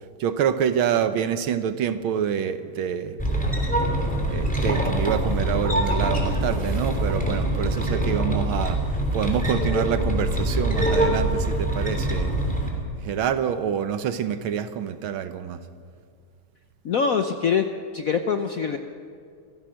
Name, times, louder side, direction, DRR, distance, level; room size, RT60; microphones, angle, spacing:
voice 1, 0.2-3.2 4.3-8.8 9.1-12.4 13.0-15.6, right 8 dB, 70° right, 11 dB, 1.7 m, -26 dB
Foley Mechanism Wheel Moderate Rusty Loop Mono, 3.2-12.7, right 1 dB, 5° left, 2.9 m, -24 dB
voice 2, 16.8-17.6 17.9-18.8, left 6 dB, 65° left, 6 dB, 0.9 m, -23 dB
27.5 x 15.0 x 6.4 m, 2.2 s
omnidirectional pair, 2.4 m